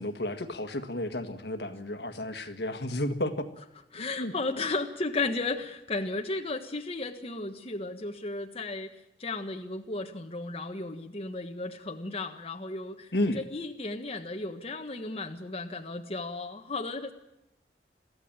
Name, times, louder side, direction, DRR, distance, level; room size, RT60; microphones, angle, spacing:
voice 1, 0.0-3.5 4.0-4.3 13.1-13.4, left 1 dB, 70° left, 8 dB, 1.8 m, -32 dB
voice 2, 3.9-8.9 9.2-17.1, left 3 dB, 35° left, 3 dB, 1.4 m, -34 dB
23.0 x 14.5 x 8.9 m, 0.88 s
head